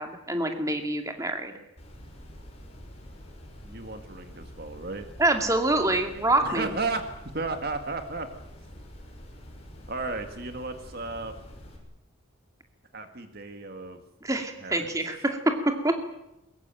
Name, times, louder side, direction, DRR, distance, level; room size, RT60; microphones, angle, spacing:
voice 1, 0.0-1.6 5.2-6.7 14.2-15.4 15.8-15.9, right 2 dB, 15° right, 5 dB, 2.4 m, -26 dB
sound 1, 1.8-11.8, equal, 30° left, 6.2 m, -46 dB
voice 2, 3.6-5.1 6.4-7.0 7.3-8.3 9.9-11.3 12.9-14.0 14.6-14.9, right 3 dB, 45° right, 7 dB, 1.9 m, -34 dB
22.0 x 21.5 x 9.1 m, 0.89 s
head